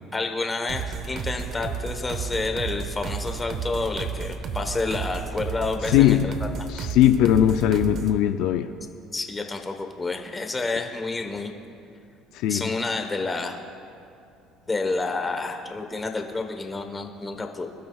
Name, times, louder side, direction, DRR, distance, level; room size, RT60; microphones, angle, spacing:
voice 1, 0.1-6.3 9.1-11.5 12.5-13.6 14.7-17.7, left 3 dB, 15° left, 5 dB, 1.2 m, -29 dB
Through the Caves Full, 0.7-8.2, right 6 dB, 50° right, 0.9 m, -32 dB
voice 2, 5.9-6.3 6.7-8.7 12.3-12.7, left 11 dB, 75° left, 8 dB, 0.5 m, -20 dB
24.5 x 12.5 x 2.4 m, 2.5 s
cardioid pair, 130°, 0 cm